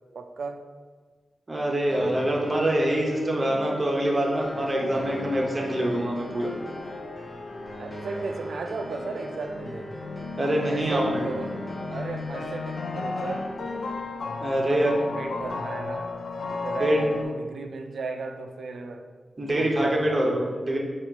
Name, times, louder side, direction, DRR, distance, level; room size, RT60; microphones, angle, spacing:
voice 1, 0.1-0.6 7.8-10.0 10.7-11.6 11.9-13.5 14.5-16.1 16.6-19.0 19.4-20.4, right 4 dB, 70° right, 6 dB, 0.3 m, -35 dB
voice 2, 1.5-6.5 10.4-11.2 14.4-14.9 16.8-17.0 19.4-20.8, right 1 dB, 30° right, -1 dB, 0.8 m, -25 dB
sound 1, 1.9-13.9, equal, 5° right, 0.4 m, -41 dB
sound 2, 4.4-17.2, left 3 dB, 70° left, 0.4 m, -35 dB
4.2 x 2.4 x 4.6 m, 1.5 s
wide cardioid pair, 105°, 0 cm